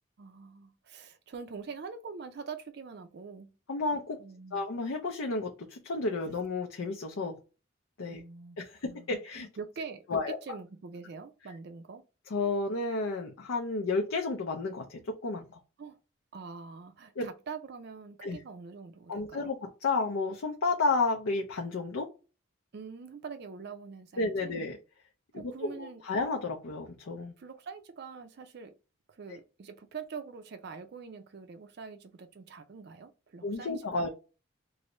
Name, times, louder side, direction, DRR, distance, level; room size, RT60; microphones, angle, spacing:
voice 1, 0.2-3.5 4.2-4.6 8.1-9.1 9.3-12.0 15.8-16.0 16.3-19.6 22.7-24.6 25.3-26.0 27.4-28.8 29.1-34.0, right 5 dB, 50° right, 0.4 m, -44 dB
voice 2, 3.7-4.2 4.5-7.4 8.0-8.2 8.6-9.5 10.1-10.4 12.3-15.5 17.2-17.3 18.2-18.4 19.1-22.1 24.2-24.8 25.4-27.3 33.4-34.1, left 3 dB, 75° left, 0.5 m, -31 dB
3.1 x 2.6 x 2.9 m
head